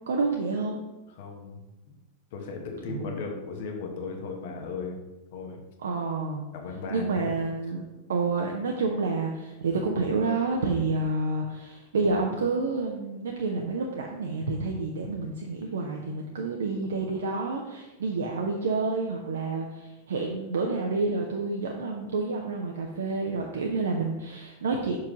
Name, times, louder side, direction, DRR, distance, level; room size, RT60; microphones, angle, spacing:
voice 1, 0.1-0.8 2.9-3.1 5.8-6.4 6.9-25.0, right 3 dB, 65° right, 1 dB, 0.6 m, -29 dB
voice 2, 1.1-2.0 2.3-5.0 5.3-5.6 6.5-7.4, left 4 dB, 55° left, 2 dB, 1.1 m, -36 dB
5.8 x 4.7 x 3.7 m, 1.0 s
figure-of-eight pair, 90°, 0 cm